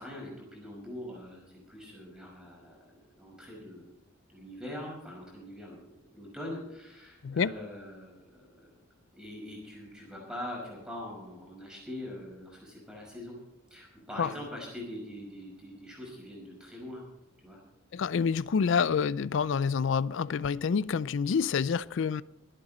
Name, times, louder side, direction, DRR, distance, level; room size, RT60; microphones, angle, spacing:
voice 1, 0.0-2.8 3.2-3.9 4.3-8.7 9.1-13.4 13.7-17.0 17.4-17.6, left 1 dB, 5° right, 5.5 m, -43 dB
voice 2, 17.9-22.2, left 6 dB, 65° left, 0.4 m, -27 dB
23.5 x 8.8 x 4.2 m
head